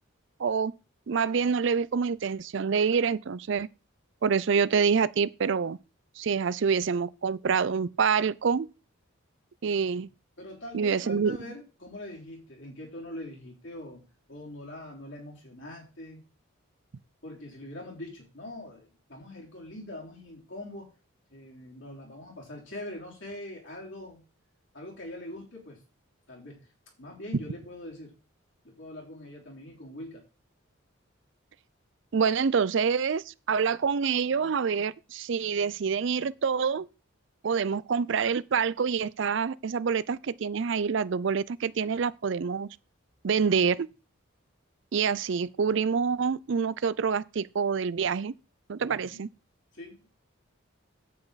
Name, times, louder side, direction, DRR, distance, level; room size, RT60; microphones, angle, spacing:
voice 1, 0.4-0.7 1.1-3.7 4.2-5.8 6.2-8.7 9.6-10.1 10.7-11.4 32.1-36.9 37.4-42.7 43.2-43.9 44.9-48.3 48.7-49.3, right 6 dB, 60° right, 0.4 m, -26 dB
voice 2, 10.4-14.0 14.3-16.3 17.2-20.9 21.3-24.2 24.7-25.8 26.3-26.7 27.0-28.1 28.6-30.2 48.8-49.2 49.7-50.1, left 1 dB, 60° left, 3.5 m, -43 dB
8.5 x 8.3 x 4.0 m
head